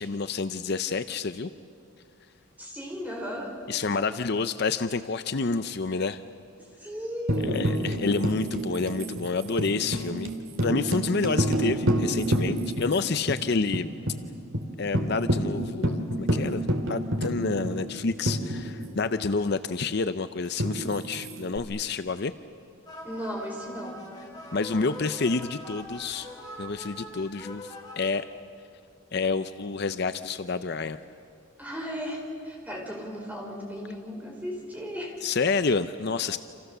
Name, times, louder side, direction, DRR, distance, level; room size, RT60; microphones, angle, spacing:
voice 1, 0.0-1.5 3.7-6.2 7.4-10.3 10.6-13.9 14.8-16.6 16.9-22.3 24.5-26.3 26.6-28.3 29.1-31.0 35.2-36.4, left 4 dB, 50° left, 11 dB, 0.6 m, -28 dB
voice 2, 2.6-3.6 6.6-7.8 23.0-24.0 31.6-35.2, equal, 5° right, 0 dB, 4.6 m, -36 dB
Tambourine, 7.3-13.0 13.3-13.4 13.7-14.2 14.5-14.6 14.9-19.1 20.6-21.6, right 1 dB, 65° right, 2.3 m, -28 dB
sound 1, 22.9-27.9, left 1 dB, 20° left, 5.0 m, -43 dB
29.5 x 27.0 x 6.8 m, 2.4 s
head